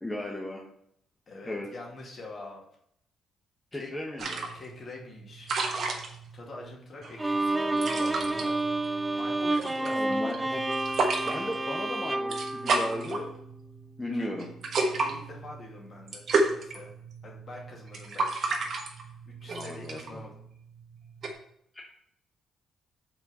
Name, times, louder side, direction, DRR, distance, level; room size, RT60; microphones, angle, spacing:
voice 1, 0.0-0.6 1.4-1.7 3.7-4.4 9.9-10.6 11.2-13.3 14.0-14.5 19.5-20.2 21.7-21.8, left 1 dB, 10° left, -1 dB, 1.2 m, -36 dB
voice 2, 1.3-2.6 3.7-3.9 4.5-5.5 6.3-8.6 9.1-10.9 14.1-14.3 14.7-16.9 17.2-18.6 19.0-20.3, left 2 dB, 45° left, -1 dB, 2.4 m, -45 dB
sound 1, 4.2-21.3, right 3 dB, 55° right, 1.4 m, -33 dB
Bowed string instrument, 7.2-13.5, right 2 dB, 10° right, 0.5 m, -30 dB
6.1 x 4.4 x 5.5 m, 0.69 s
cardioid pair, 90°, 0 cm